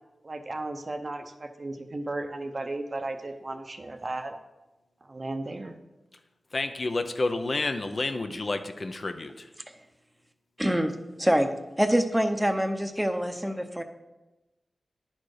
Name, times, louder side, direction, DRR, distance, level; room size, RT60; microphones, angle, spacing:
voice 1, 0.2-4.3 5.0-5.7, right 2 dB, 45° right, 0.8 m, -35 dB
voice 2, 6.5-9.5, left 2 dB, 50° left, 0.6 m, -30 dB
voice 3, 10.6-11.5 11.8-13.8, equal, 10° right, 0.8 m, -25 dB
10.0 x 4.4 x 4.8 m
cardioid pair, 55°, 0 cm